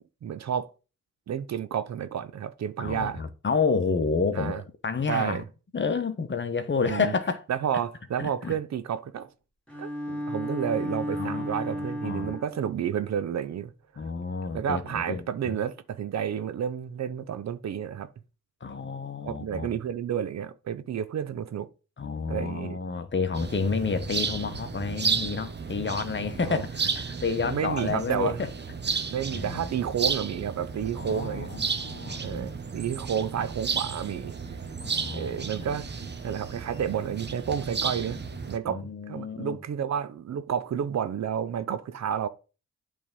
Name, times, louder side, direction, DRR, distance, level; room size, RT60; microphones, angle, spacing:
voice 1, 0.2-0.7 1.3-3.2 4.3-4.6 5.1-5.4 6.8-7.1 7.5-9.3 9.8-13.7 14.5-18.1 19.3-21.7 22.3-22.8 26.4-26.6 27.4-28.4 29.1-31.6 32.2-34.4 35.1-35.9 36.2-38.2 38.5-42.3, right 8 dB, 55° right, 0.7 m, -30 dB
voice 2, 2.8-5.4 5.7-7.4 8.2-8.6 11.1-12.3 14.0-15.5 18.6-19.8 22.0-28.5 28.9-29.0 29.3-29.8 31.0-32.5 34.8-35.8 38.6-39.6, left 5 dB, 35° left, 1.1 m, -30 dB
Bowed string instrument, 9.7-12.7, equal, 5° left, 2.5 m, -33 dB
sound 1, 23.3-38.6, right 5 dB, 35° right, 1.0 m, -33 dB
8.5 x 3.6 x 5.4 m
supercardioid pair, 50°, 32 cm